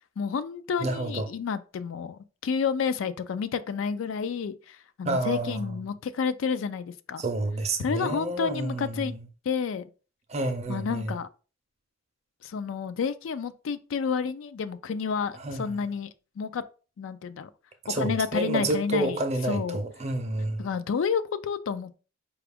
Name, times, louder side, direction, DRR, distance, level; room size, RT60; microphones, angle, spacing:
voice 1, 0.2-7.2 7.8-9.1 9.5-9.8 10.7-11.3 12.4-16.1 16.4-16.6 17.0-17.5 18.0-19.2 19.5-19.8 20.6-22.0, left 6 dB, 75° left, 0.4 m, -30 dB
voice 2, 0.8-1.3 5.0-5.7 7.2-9.2 10.3-11.1 15.4-15.7 17.8-20.7, right 2 dB, 35° right, 0.5 m, -29 dB
4.9 x 2.4 x 3.4 m
head